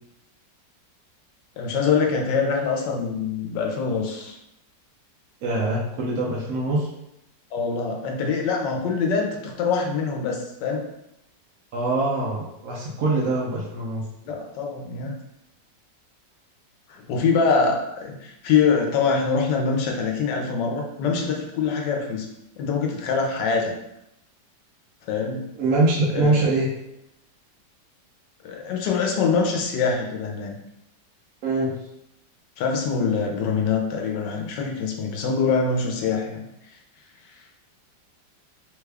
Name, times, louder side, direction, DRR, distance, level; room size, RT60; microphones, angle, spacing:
voice 1, 1.6-4.4 7.5-10.9 14.2-15.1 17.1-22.3 22.6-23.7 25.1-25.4 26.1-26.4 28.4-30.6 32.6-36.5, left 5 dB, 75° left, 1 dB, 1.3 m, -24 dB
voice 2, 5.4-6.9 11.7-14.0 25.5-26.7 31.4-31.7, right 2 dB, 65° right, -5 dB, 0.9 m, -23 dB
3.3 x 2.3 x 3.3 m, 0.83 s
omnidirectional pair, 1.9 m